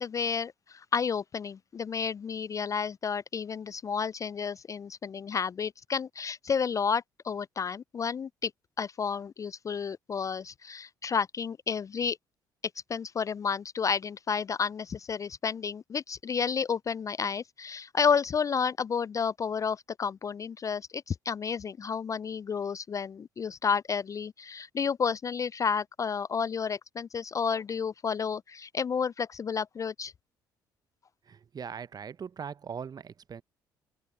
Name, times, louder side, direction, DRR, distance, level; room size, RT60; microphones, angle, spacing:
voice 1, 0.0-8.5 8.8-12.2 12.9-30.1, left 6 dB, 30° left, 0.3 m, -31 dB
voice 2, 31.3-33.4, right 7 dB, 35° right, 0.8 m, -40 dB
open air
hypercardioid pair, 50°, 11 cm